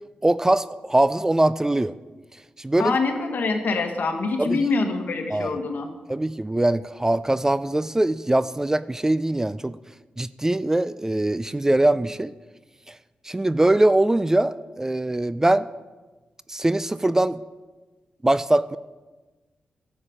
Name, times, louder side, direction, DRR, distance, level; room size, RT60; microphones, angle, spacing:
voice 1, 0.2-1.9 2.6-3.0 4.4-4.7 5.3-5.5 6.1-9.8 10.2-12.3 13.3-15.7 16.5-17.4 18.2-18.8, right 1 dB, 15° right, 16 dB, 0.3 m, -22 dB
voice 2, 2.8-5.9, left 3 dB, 70° left, 5 dB, 1.3 m, -25 dB
11.0 x 7.2 x 5.0 m, 1.2 s
cardioid pair, 65°, 3 cm